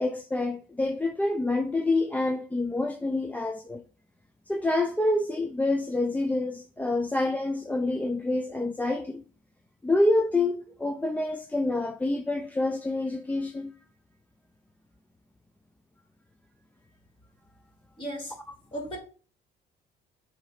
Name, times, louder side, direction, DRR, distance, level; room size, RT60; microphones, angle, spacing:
voice 1, 0.0-3.8 4.5-9.2 9.8-13.7, left 2 dB, 10° left, 0.5 m, -27 dB
voice 2, 18.0-18.3 18.7-19.0, right 1 dB, 30° left, 2.9 m, -35 dB
7.7 x 2.9 x 5.0 m
cardioid pair, 110°, 17 cm